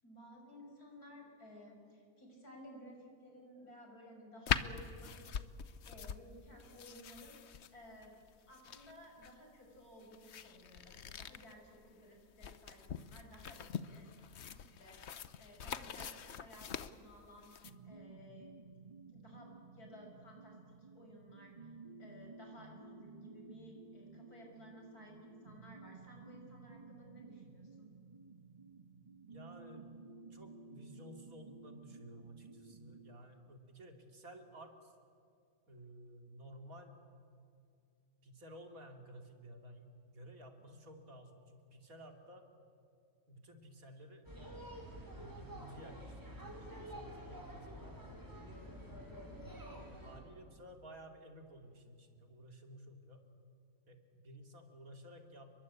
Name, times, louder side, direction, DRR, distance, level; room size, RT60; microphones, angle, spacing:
voice 1, 0.0-5.3 5.9-8.1 8.5-15.0 15.4-17.5 17.8-18.5 19.1-20.6 20.9-21.7 22.0-27.9, equal, 85° left, 1 dB, 6.5 m, -56 dB
sound 1, 4.5-17.7, left 7 dB, 55° left, 1.0 m, -43 dB
sound 2, 17.6-33.2, right 4 dB, 30° right, 1.5 m, -55 dB
voice 2, 29.3-30.0 30.3-34.9 35.7-37.0 38.2-42.5 43.3-44.3 45.1-48.1 49.4-53.2 53.9-55.6, right 1 dB, 65° right, 4 dB, 3.1 m, -55 dB
sound 3, 44.2-50.2, equal, 15° right, 4.4 m, -49 dB
29.5 x 22.5 x 8.5 m, 2.3 s
omnidirectional pair, 1.6 m